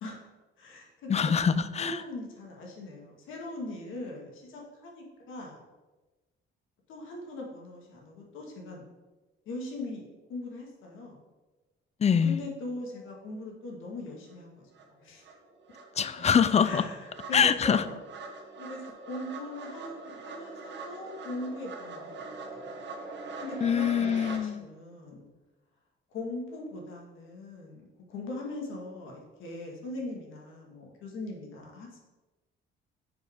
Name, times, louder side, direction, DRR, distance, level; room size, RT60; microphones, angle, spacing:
voice 1, 0.6-1.4 1.8-5.6 6.9-8.8 9.5-11.2 12.1-14.6 15.0-15.3 16.6-18.0 18.6-18.8 19.1-22.7 23.4-25.3 26.1-32.0, left 2 dB, 85° left, 0 dB, 1.9 m, -40 dB
voice 2, 1.1-2.0 12.0-12.4 16.0-16.9 17.3-17.8 23.6-24.7, left 7 dB, 35° left, 14 dB, 0.5 m, -24 dB
sound 1, 14.3-14.4 14.7-24.4, right 3 dB, 65° right, 1.3 m, -43 dB
6.7 x 4.7 x 5.1 m, 1.1 s
cardioid pair, 90°, 20 cm